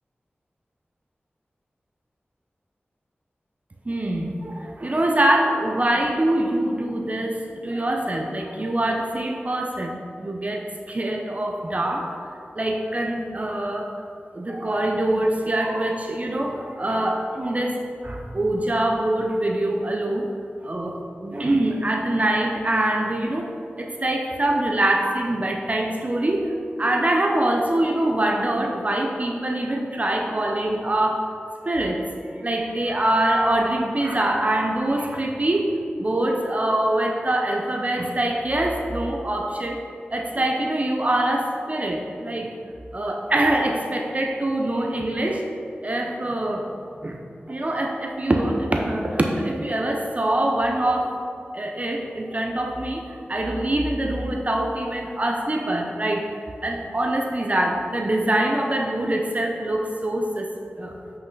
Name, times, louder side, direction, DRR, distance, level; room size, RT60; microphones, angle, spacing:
voice 1, 3.8-12.1 12.5-13.9 14.3-20.3 20.6-21.0 21.2-23.5 23.8-31.3 31.6-32.0 32.4-39.8 40.1-42.5 42.9-45.4 45.8-46.7 47.0-47.2 47.5-51.1 51.5-61.0, right 1 dB, 40° right, 1 dB, 0.7 m, -24 dB
8.0 x 5.6 x 3.9 m, 2.4 s
wide cardioid pair, 85°, 4 cm